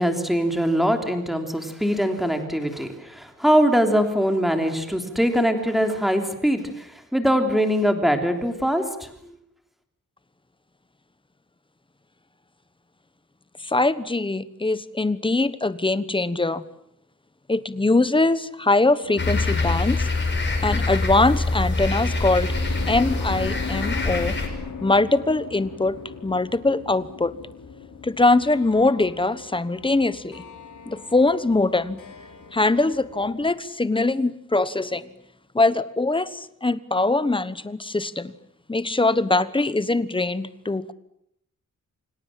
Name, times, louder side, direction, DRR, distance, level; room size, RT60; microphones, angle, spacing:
voice 1, 0.0-9.1, equal, ahead, 5 dB, 3.3 m, -22 dB
voice 2, 13.6-16.6 17.5-20.1 20.6-22.5 22.9-24.4 24.8-27.3 28.0-30.4 30.9-32.0 32.5-35.1 35.5-38.3 38.7-40.9, left 2 dB, 15° left, 15 dB, 1.1 m, -22 dB
sound 1, 19.0-33.6, left 6 dB, 75° left, 5.1 m, -39 dB
sound 2, 19.2-24.5, left 2 dB, 35° left, 6.2 m, -24 dB
29.5 x 25.5 x 7.6 m, 0.75 s
wide cardioid pair, 165°, 31 cm